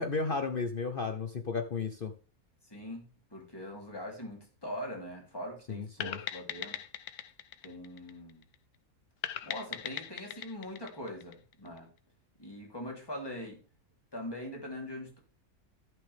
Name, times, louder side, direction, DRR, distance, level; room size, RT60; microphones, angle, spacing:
voice 1, 0.0-2.1 5.7-6.2, left 4 dB, 45° left, 6 dB, 0.9 m, -33 dB
voice 2, 2.7-6.8 7.6-8.4 9.4-11.9 12.4-13.6 14.1-15.2, left 1 dB, 15° left, 0 dB, 3.2 m, -42 dB
sound 1, 6.0-8.5 9.2-11.8, left 11 dB, 85° left, 1.2 m, -40 dB
14.0 x 6.1 x 3.4 m, 0.37 s
omnidirectional pair, 1.6 m